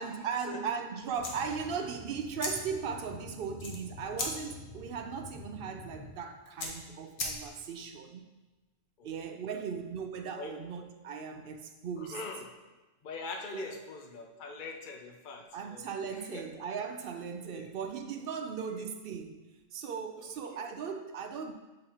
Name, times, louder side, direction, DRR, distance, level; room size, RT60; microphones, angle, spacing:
voice 1, 0.0-8.2 9.0-12.2 13.5-13.8 15.5-19.4 19.7-21.5, right 6 dB, 60° right, 6 dB, 0.6 m, -38 dB
sound 1, 1.1-7.8, left 2 dB, 85° left, 1.4 m, -41 dB
sound 2, 1.1-6.1, left 2 dB, 5° left, 1.3 m, -48 dB
voice 2, 9.0-9.4 10.4-10.5 12.0-12.4 13.0-15.9 16.2-16.4 17.4-17.6 18.7-18.8 20.2-20.6, left 4 dB, 55° left, 3 dB, 0.6 m, -43 dB
7.2 x 5.1 x 2.8 m, 1.1 s
omnidirectional pair, 1.3 m